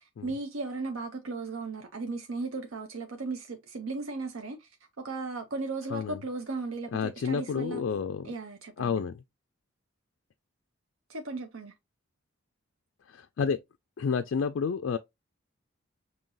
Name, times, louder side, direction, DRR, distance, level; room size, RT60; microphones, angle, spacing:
voice 1, 0.0-4.7 5.0-7.8 8.2-9.0 11.1-11.7, right 3 dB, 85° right, 0.7 m, -36 dB
voice 2, 6.9-8.3 8.8-9.2 13.1-13.6 14.0-15.0, left 6 dB, 65° left, 0.3 m, -30 dB
5.5 x 2.8 x 2.6 m
head